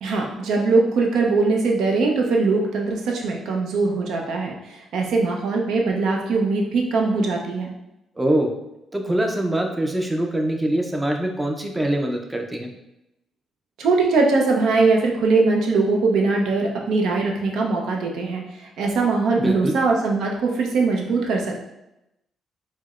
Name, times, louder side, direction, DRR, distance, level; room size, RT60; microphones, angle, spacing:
voice 1, 0.0-7.7 13.8-21.6, right 3 dB, 80° right, 0 dB, 0.6 m, -21 dB
voice 2, 8.2-8.5 8.9-12.7 19.4-19.8, right 1 dB, 15° right, 3 dB, 0.5 m, -23 dB
4.5 x 2.1 x 2.4 m, 0.90 s
cardioid pair, 90°, 0 cm